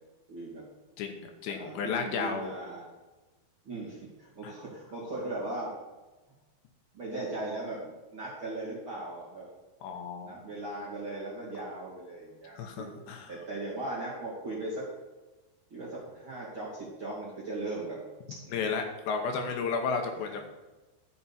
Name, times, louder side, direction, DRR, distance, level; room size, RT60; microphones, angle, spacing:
voice 1, 0.3-0.6 1.5-2.9 3.6-5.7 6.9-9.5 10.2-13.0 13.3-14.9 15.7-18.0 18.4-18.6 20.1-20.3, right 2 dB, 35° right, -7 dB, 2.3 m, -38 dB
voice 2, 1.0-2.5 4.4-4.5 9.8-10.4 12.6-13.3 18.5-20.5, left 5 dB, 75° left, 4 dB, 3.0 m, -33 dB
13.5 x 7.0 x 4.2 m, 1.2 s
omnidirectional pair, 5.3 m